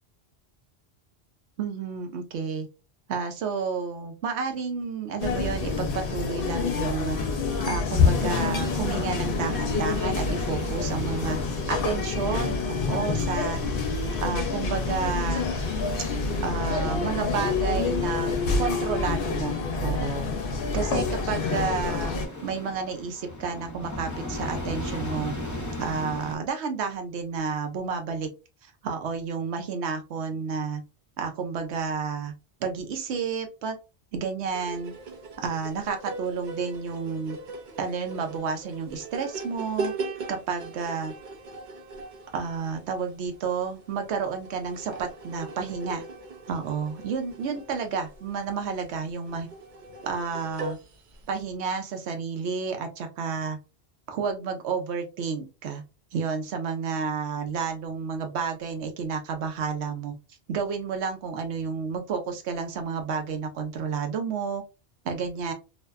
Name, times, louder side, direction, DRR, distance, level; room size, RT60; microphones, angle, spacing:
voice 1, 1.6-2.7 3.1-7.2 7.7-11.4 11.7-13.6 14.2-15.4 16.4-18.3 18.6-20.3 20.7-25.3 25.8-28.3 28.8-30.8 31.2-32.3 32.6-33.8 34.1-34.9 35.4-37.4 37.8-39.9 40.3-41.1 42.3-46.0 46.5-49.5 50.0-50.8 51.3-53.6 54.1-55.8 56.1-60.1 60.5-64.6 65.0-65.5, right 5 dB, 85° right, 5 dB, 0.9 m, -31 dB
sound 1, 5.2-22.3, left 4 dB, 60° left, 0.8 m, -27 dB
sound 2, 7.9-26.4, left 1 dB, 20° left, 0.6 m, -38 dB
sound 3, 34.5-51.4, right 3 dB, 55° right, 0.6 m, -40 dB
2.6 x 2.2 x 2.3 m, 0.28 s
omnidirectional pair, 1.1 m